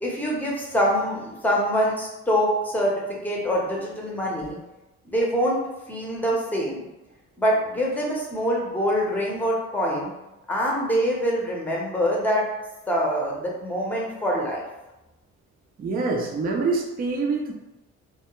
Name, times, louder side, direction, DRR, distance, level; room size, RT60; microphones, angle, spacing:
voice 1, 0.0-4.6 5.0-5.6 5.9-6.8 7.4-10.1 10.5-12.4 12.9-14.6, equal, 5° left, -3 dB, 0.7 m, -24 dB
voice 2, 15.8-17.5, right 3 dB, 30° right, 1 dB, 0.4 m, -25 dB
2.2 x 2.1 x 2.9 m, 0.98 s
cardioid pair, 90°, 30 cm